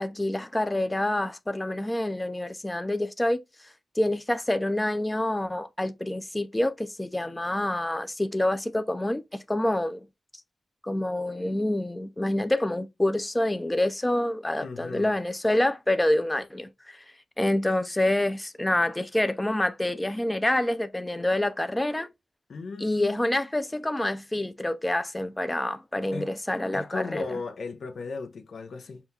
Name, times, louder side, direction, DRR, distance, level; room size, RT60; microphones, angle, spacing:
voice 1, 0.0-10.1 10.8-17.1 17.4-22.1 22.8-27.4, left 1 dB, 15° left, 0.3 m, -27 dB
voice 2, 14.6-15.1 22.5-23.4 26.1-26.3 26.7-29.0, left 4 dB, 80° left, 0.6 m, -36 dB
5.4 x 2.3 x 2.7 m
wide cardioid pair, 90°, 0 cm